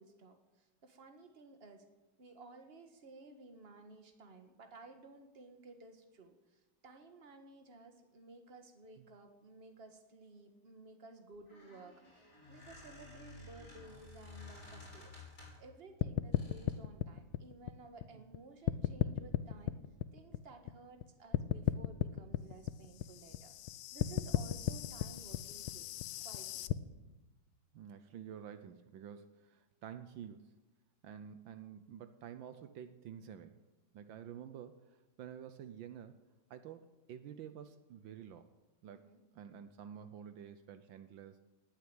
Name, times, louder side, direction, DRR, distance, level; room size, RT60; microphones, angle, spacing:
voice 1, 0.0-1.8 2.2-15.2 15.6-19.8 20.1-25.9 26.2-26.7 38.9-39.2, right 3 dB, 30° right, 5 dB, 1.8 m, -56 dB
Squeak, 11.3-15.7 16.3-16.8, left 3 dB, 40° left, 7.0 m, -54 dB
sound 1, 16.0-18.4 18.7-21.0 21.3-26.7, left 13 dB, 85° left, 1.5 m, -35 dB
voice 2, 27.7-30.6 31.0-33.6 33.9-36.2 36.5-38.5 38.8-39.1 39.3-41.4, right 9 dB, 75° right, 10 dB, 1.5 m, -50 dB
19.0 x 8.1 x 8.9 m, 1.1 s
omnidirectional pair, 2.2 m